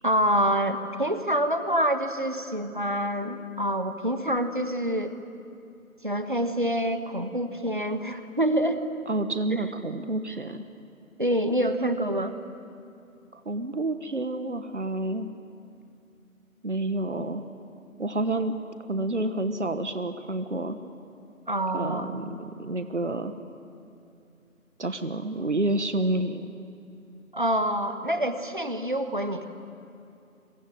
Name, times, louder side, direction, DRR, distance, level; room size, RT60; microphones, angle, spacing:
voice 1, 0.0-5.2 6.0-8.8 11.2-12.3 21.5-22.1 27.3-29.5, equal, 35° right, 9 dB, 1.4 m, -26 dB
voice 2, 9.1-10.6 13.3-15.3 16.6-17.5 18.0-18.6 18.9-20.8 21.7-23.3 24.8-26.5, right 2 dB, 55° right, 9 dB, 1.4 m, -29 dB
27.0 x 24.0 x 9.1 m, 2.6 s
figure-of-eight pair, 170°, 42 cm